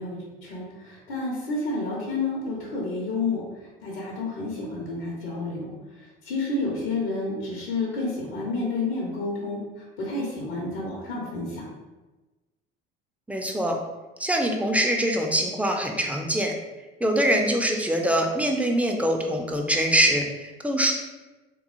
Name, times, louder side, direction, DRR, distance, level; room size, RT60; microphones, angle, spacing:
voice 1, 0.0-3.4 3.8-5.7 6.2-9.6 10.0-11.7, left 3 dB, 75° left, -4 dB, 0.9 m, -30 dB
voice 2, 13.3-13.8 14.2-16.5 17.0-20.9, right 1 dB, 5° right, 2 dB, 0.5 m, -23 dB
3.5 x 3.0 x 2.4 m, 1.2 s
hypercardioid pair, 60°, 30 cm